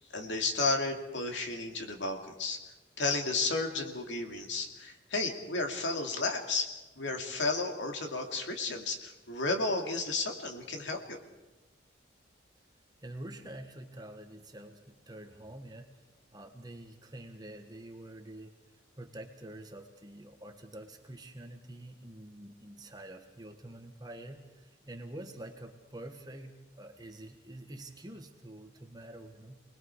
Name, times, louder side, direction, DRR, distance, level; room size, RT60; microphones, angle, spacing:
voice 1, 0.1-2.6 3.0-6.7 7.0-11.2, left 3 dB, 80° left, 3 dB, 2.5 m, -33 dB
voice 2, 13.0-15.9 16.3-18.6 19.0-29.6, right 1 dB, 20° right, 4 dB, 1.7 m, -47 dB
28.5 x 20.5 x 4.8 m, 1.1 s
head